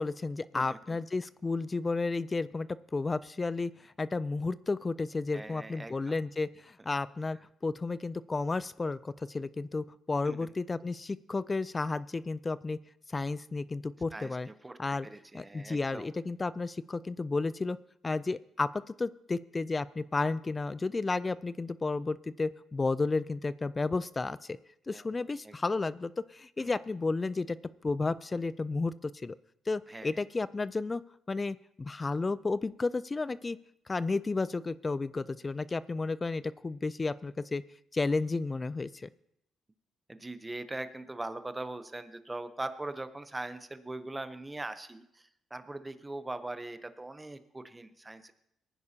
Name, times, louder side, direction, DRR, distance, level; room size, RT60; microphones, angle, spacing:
voice 1, 0.0-2.7 2.9-12.8 13.1-14.5 14.8-15.1 15.3-17.8 18.0-18.7 19.0-24.6 24.9-27.6 27.8-29.4 29.7-31.0 31.3-33.6 33.9-37.6 37.9-39.1, left 3 dB, 25° left, 17 dB, 0.3 m, -32 dB
voice 2, 0.5-1.0 5.3-6.1 10.2-10.5 14.1-16.1 24.9-25.0 25.4-25.6 26.6-26.7 29.9-30.1 40.1-48.3, right 2 dB, 15° right, 11 dB, 0.7 m, -41 dB
19.0 x 9.9 x 2.8 m, 0.75 s
cardioid pair, 95°, 0 cm